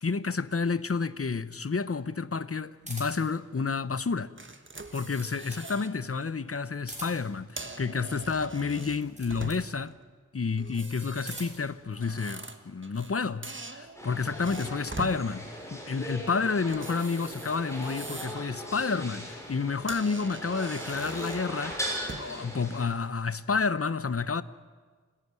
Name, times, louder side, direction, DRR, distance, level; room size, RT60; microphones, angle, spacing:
voice 1, 0.0-4.4 4.9-10.0 10.3-21.8 22.2-24.4, left 4 dB, 50° left, 0.8 m, -30 dB
sound 1, 2.8-3.4 4.7-5.7 6.8-7.4 8.9-9.7 10.9-11.7, right 1 dB, 25° right, 6.2 m, -44 dB
sound 2, 4.4-5.9 6.3-6.6 7.3-9.9 10.6-13.1 13.4-15.2 16.7-18.5 18.9-19.1 19.6-19.7 19.9-22.4, right 3 dB, 40° right, 1.6 m, -43 dB
sound 3, 13.9-22.8, equal, 10° left, 6.8 m, -39 dB
27.0 x 15.5 x 9.5 m
wide cardioid pair, 60°, 31 cm